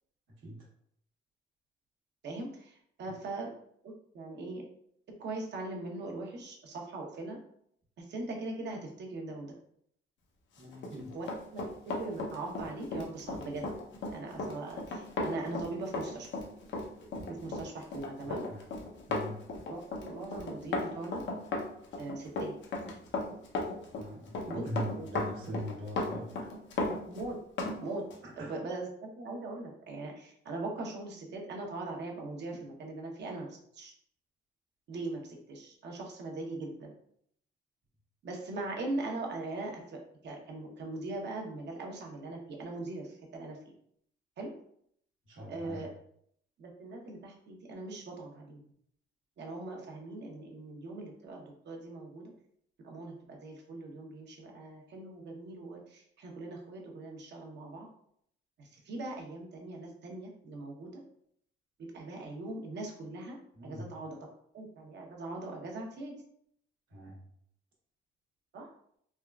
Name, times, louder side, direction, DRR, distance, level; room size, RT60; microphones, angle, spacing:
voice 1, 2.2-3.5 3.8-4.6 5.2-7.4 8.0-9.5 11.1-11.3 11.9-13.7 14.0-16.3 17.3-18.4 19.7-21.2 22.0-22.5 24.5-24.6 24.9-25.2 27.1-27.4 27.8-28.0 28.4-33.9 34.9-36.9 38.2-43.6 44.4-44.5 45.5-45.9 46.6-48.6 49.4-52.3 52.8-57.9 58.6-61.0 61.8-63.4 63.6-64.3 64.5-66.2 68.5-68.7, right 2 dB, 60° right, 0 dB, 0.8 m, -40 dB
voice 2, 10.6-11.1 18.5-18.6 19.1-19.4 23.9-26.3 28.4-28.5 45.3-45.8 63.5-63.9 66.9-67.2, equal, 80° right, -3 dB, 1.1 m, -41 dB
Run, 10.7-27.8 28.1-28.3, left 2 dB, 70° left, 0.7 m, -36 dB
3.5 x 2.3 x 2.2 m, 0.68 s
cardioid pair, 90°, 20 cm